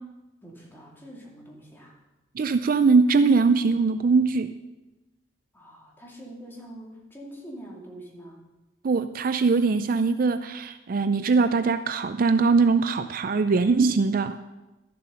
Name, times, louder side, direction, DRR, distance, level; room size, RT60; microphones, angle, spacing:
voice 1, 0.4-2.0 5.5-8.4, right 1 dB, 10° left, -3 dB, 2.4 m, -44 dB
voice 2, 2.4-4.5 8.8-14.4, right 4 dB, 50° right, 11 dB, 0.4 m, -21 dB
12.0 x 7.6 x 5.6 m, 1.0 s
head